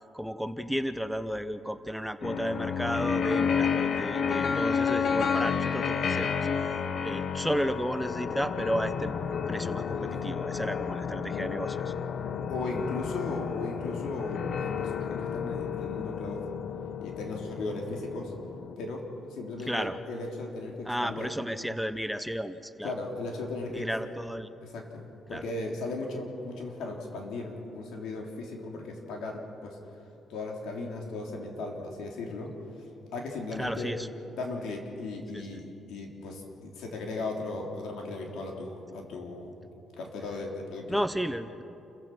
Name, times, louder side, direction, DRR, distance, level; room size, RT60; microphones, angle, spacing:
voice 1, 0.1-11.9 19.7-20.0 20.8-22.9 23.7-24.5 25.3-25.4 33.5-34.1 35.3-35.4 40.9-41.6, equal, ahead, 10 dB, 0.9 m, -33 dB
sound 1, 2.2-18.8, left 6 dB, 55° left, 1.0 m, -31 dB
voice 2, 12.5-16.4 17.0-18.3 18.8-19.0 19.3-21.3 22.8-23.9 24.6-29.8 30.3-32.5 33.1-33.9 34.2-39.5 40.0-41.0, left 2 dB, 85° left, 1 dB, 3.5 m, -37 dB
28.5 x 15.5 x 6.2 m, 2.9 s
cardioid pair, 90°, 0 cm